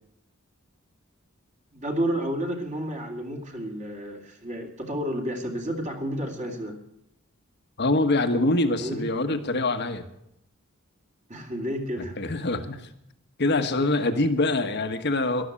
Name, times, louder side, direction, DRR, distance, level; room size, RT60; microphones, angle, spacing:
voice 1, 1.7-6.7 8.7-9.1 11.3-12.2, equal, 35° right, 3 dB, 2.5 m, -31 dB
voice 2, 7.8-10.0 12.2-12.9 13.4-15.5, left 2 dB, 55° left, 8 dB, 1.3 m, -24 dB
13.0 x 12.0 x 8.4 m, 0.81 s
head